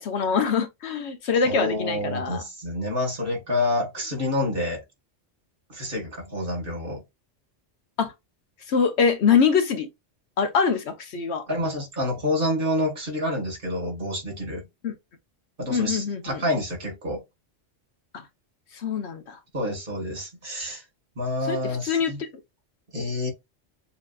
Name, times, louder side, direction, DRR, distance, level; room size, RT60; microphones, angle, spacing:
voice 1, 0.0-2.4 8.0-8.1 8.7-9.9 10.4-11.5 14.8-14.9 15.7-16.4 18.1-18.3 18.7-19.4 21.4-22.3, left 6 dB, 70° left, 1.1 m, -24 dB
voice 2, 1.4-4.8 5.7-7.0 11.5-14.6 15.6-17.2 19.5-20.8 21.2-22.2 22.9-23.3, left 1 dB, 50° right, 2.0 m, -28 dB
6.9 x 2.8 x 2.4 m
omnidirectional pair, 1.2 m